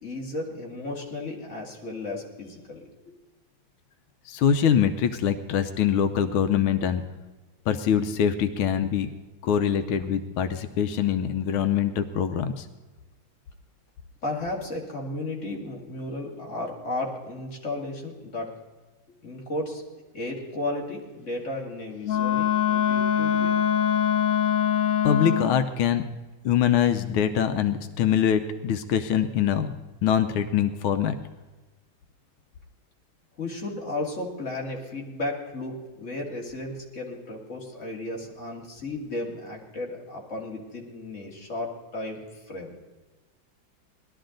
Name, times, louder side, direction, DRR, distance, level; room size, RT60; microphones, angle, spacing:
voice 1, 0.0-3.2 14.2-18.5 19.2-19.8 20.1-23.5 33.4-42.7, left 2 dB, 35° left, -2 dB, 2.6 m, -34 dB
voice 2, 4.3-7.0 7.7-9.1 9.4-12.7 25.0-26.0 26.4-29.7 30.0-31.1, left 8 dB, 90° left, 9 dB, 1.5 m, -24 dB
Wind instrument woodwind instrument, 22.0-25.7, left 9 dB, 70° left, 0.8 m, -23 dB
19.5 x 12.0 x 3.8 m, 1.2 s
omnidirectional pair, 2.2 m